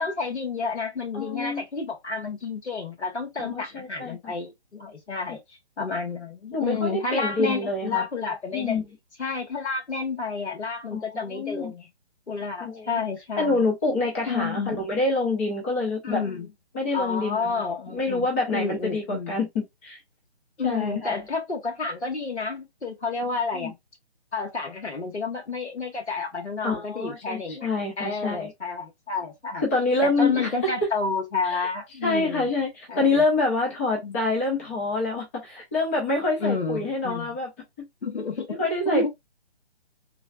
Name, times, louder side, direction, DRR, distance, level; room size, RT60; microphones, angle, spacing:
voice 1, 0.0-8.8 9.2-11.9 12.3-13.7 14.3-14.8 16.0-16.5 16.9-19.4 20.6-23.7 24.3-27.7 28.0-29.6 30.0-32.5 32.9-33.1 34.0-34.2 36.4-37.3 38.0-38.6 38.8-39.1, left 4 dB, 90° left, 1.4 m, -30 dB
voice 2, 1.1-1.6 3.4-4.3 5.3-5.4 6.5-8.0 8.5-8.9 10.9-11.7 12.6-13.0 13.4-16.2 16.7-20.0 20.6-21.3 23.2-23.7 26.6-28.5 29.5-30.7 31.4-31.7 32.0-37.5 38.5-39.1, left 3 dB, 15° left, 0.5 m, -27 dB
3.2 x 2.3 x 2.5 m
figure-of-eight pair, 145°, 33 cm